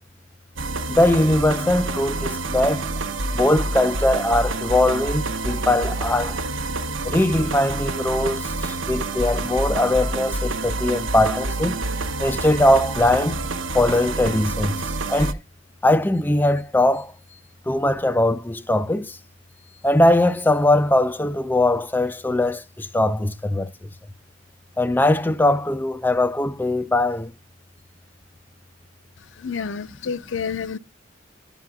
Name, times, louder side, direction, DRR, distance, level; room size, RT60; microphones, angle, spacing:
sound 1, 0.6-15.3, right 2 dB, 85° right, 0.7 m, -28 dB
voice 1, 0.9-2.9 3.3-6.4 7.0-11.8 12.2-13.4 13.7-14.8 15.1-15.4 15.8-17.1 17.7-19.2 19.8-23.7 24.8-27.3, left 1 dB, 10° left, 0.4 m, -20 dB
voice 2, 29.4-30.8, left 6 dB, 80° left, 0.5 m, -29 dB
9.6 x 9.2 x 2.2 m
head